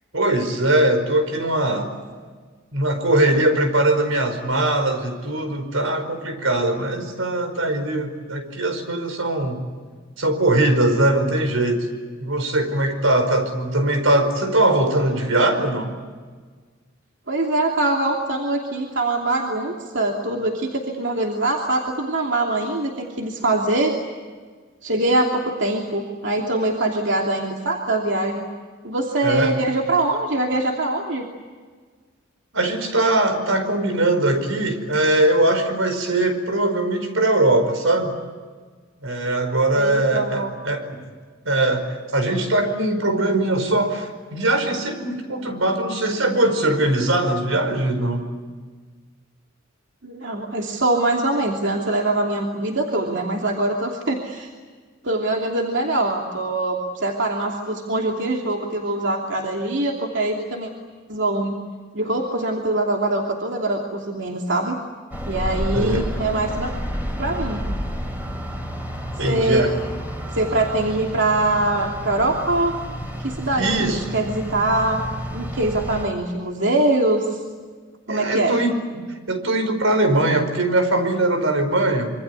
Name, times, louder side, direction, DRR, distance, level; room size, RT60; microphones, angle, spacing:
voice 1, 0.1-1.9 2.7-9.6 10.2-11.9 12.2-15.9 29.2-29.5 32.5-38.1 39.0-40.9 41.4-48.3 65.7-66.0 69.2-69.7 73.5-74.0 78.1-82.1, right 1 dB, 85° right, 8 dB, 5.0 m, -21 dB
voice 2, 17.3-23.9 24.8-28.5 28.8-31.3 39.7-40.5 50.0-54.5 55.0-60.7 61.1-61.6 61.9-64.8 65.3-66.7 67.2-67.6 69.2-69.7 70.3-72.7 73.1-75.1 75.3-77.4 78.1-78.6, right 2 dB, 65° right, 0 dB, 2.9 m, -23 dB
sound 1, 65.1-76.1, equal, 10° right, 3.2 m, -30 dB
26.5 x 25.0 x 8.4 m, 1.5 s
head